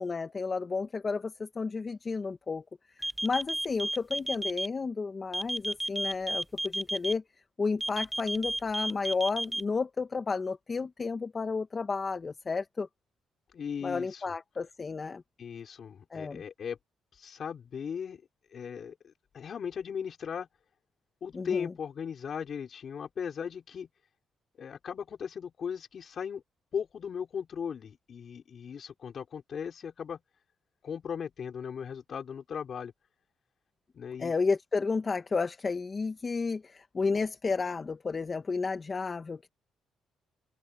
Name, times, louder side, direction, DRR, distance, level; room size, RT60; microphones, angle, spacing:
voice 1, 0.0-2.6 3.2-7.2 7.6-12.9 13.8-15.2 16.1-16.4 21.3-21.7 34.2-39.5, left 4 dB, 35° left, 1.5 m, -32 dB
sound 1, 3.0-4.7 5.3-7.1 7.8-9.6, right 1 dB, 10° right, 0.5 m, -32 dB
voice 2, 13.5-14.2 15.4-16.8 17.1-18.2 18.5-20.5 21.2-23.9 24.6-26.4 26.7-30.2 30.8-32.9 33.9-34.3, left 7 dB, 55° left, 4.8 m, -37 dB
open air
cardioid pair, 90°, 0 cm